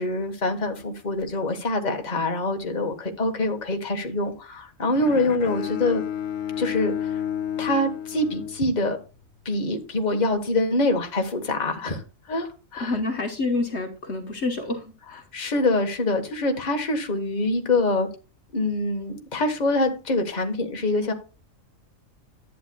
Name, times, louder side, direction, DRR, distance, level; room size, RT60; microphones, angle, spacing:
voice 1, 0.0-6.0 6.6-7.2 7.6-9.0 9.4-12.0 12.3-12.9 15.3-18.1 18.5-21.1, left 2 dB, 35° left, 1.5 m, -25 dB
Bowed string instrument, 4.9-9.2, left 10 dB, 75° left, 1.1 m, -31 dB
voice 2, 12.8-15.2, left 3 dB, 55° left, 1.4 m, -28 dB
11.5 x 8.9 x 2.3 m
omnidirectional pair, 1.4 m